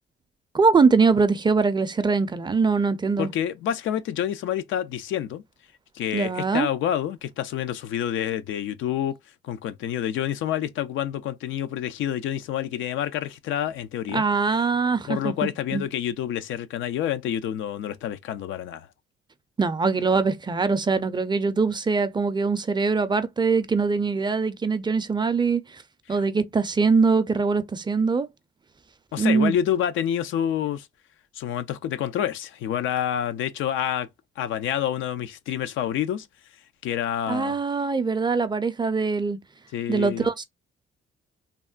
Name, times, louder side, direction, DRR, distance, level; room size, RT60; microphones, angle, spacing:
voice 1, 0.5-3.3 6.1-6.7 14.1-15.8 19.6-25.6 26.1-28.3 29.2-29.5 37.3-39.4 39.9-40.4, right 4 dB, 20° right, 0.4 m, -22 dB
voice 2, 3.2-5.4 5.9-9.2 9.4-14.2 15.1-18.9 26.1-26.2 29.1-30.9 31.3-34.1 34.4-36.3 36.8-37.6 39.7-40.3, left 10 dB, 80° left, 0.4 m, -28 dB
3.5 x 2.1 x 2.3 m
cardioid pair, 90°, 20 cm